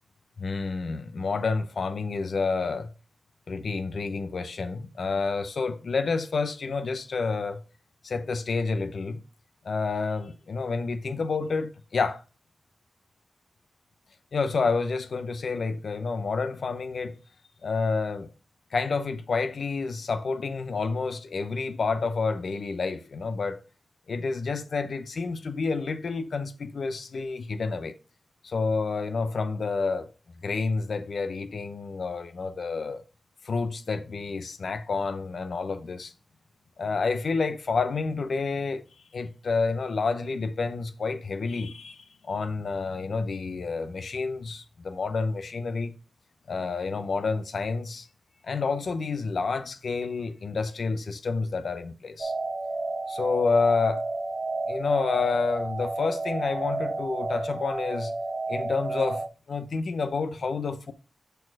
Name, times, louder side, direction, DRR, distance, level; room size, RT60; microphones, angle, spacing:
voice 1, 0.4-2.9 3.5-7.6 8.0-9.2 9.6-12.2 14.3-17.2 17.6-18.3 18.7-23.6 24.1-28.0 28.4-30.1 30.4-33.0 33.4-36.1 36.8-38.8 39.1-45.9 46.5-48.1 48.4-52.3 53.1-54.0 54.7-58.1 58.5-60.9, left 4 dB, 80° left, 0.7 m, -29 dB
sound 1, 52.2-59.3, right 3 dB, 45° right, 0.5 m, -31 dB
6.7 x 4.3 x 4.7 m
wide cardioid pair, 110°, 0 cm